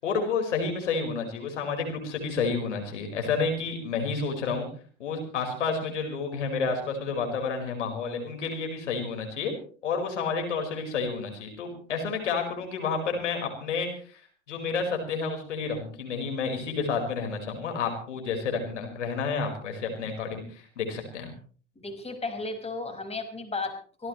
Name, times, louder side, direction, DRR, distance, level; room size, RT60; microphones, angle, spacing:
voice 1, 0.0-4.7 5.0-9.5 9.8-21.3, left 5 dB, 85° left, 3 dB, 4.9 m, -30 dB
voice 2, 21.8-24.1, left 3 dB, 15° left, 4 dB, 5.7 m, -34 dB
25.0 x 17.0 x 3.2 m, 0.41 s
hypercardioid pair, 80°, 35 cm